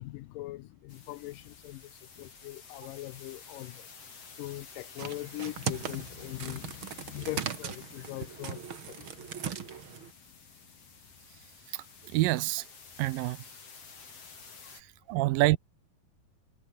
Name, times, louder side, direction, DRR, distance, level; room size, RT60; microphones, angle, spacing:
voice 1, 0.0-3.9 4.4-9.8 14.6-14.7, left 18 dB, 80° left, 2.2 m, -41 dB
sound 1, 0.9-14.8, left 5 dB, 40° left, 4.9 m, -51 dB
sound 2, 5.0-10.1, right 8 dB, 45° right, 2.0 m, -39 dB
sound 3, 7.0-7.7 8.5-9.8, right 4 dB, 30° right, 3.2 m, -62 dB
voice 2, 11.7-12.7 13.0-13.4 14.7-15.6, right 18 dB, 80° right, 2.4 m, -28 dB
omnidirectional pair, 4.2 m